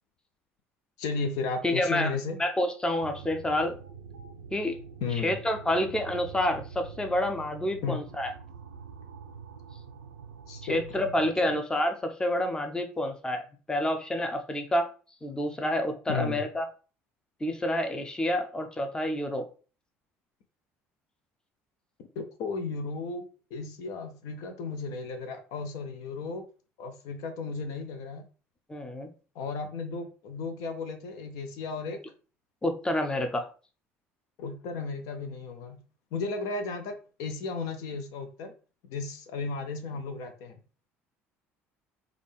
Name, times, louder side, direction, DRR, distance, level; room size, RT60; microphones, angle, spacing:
voice 1, 1.0-2.4 5.0-5.4 7.8-8.0 10.5-11.0 11.4-11.5 16.1-16.4 22.2-23.3 23.5-26.4 26.8-28.3 29.4-32.0 34.4-35.8 36.1-38.5 38.9-40.6, left 4 dB, 55° left, 7 dB, 0.6 m, -34 dB
voice 2, 1.6-2.1 2.4-3.8 4.5-4.8 5.2-8.3 10.7-14.9 15.2-16.7 17.4-19.5 28.7-29.1 32.6-33.5, left 1 dB, 10° left, 6 dB, 0.6 m, -28 dB
sound 1, 3.0-11.3, right 6 dB, 80° right, 0.4 m, -45 dB
5.0 x 2.4 x 3.3 m, 0.37 s
figure-of-eight pair, 60°, 7 cm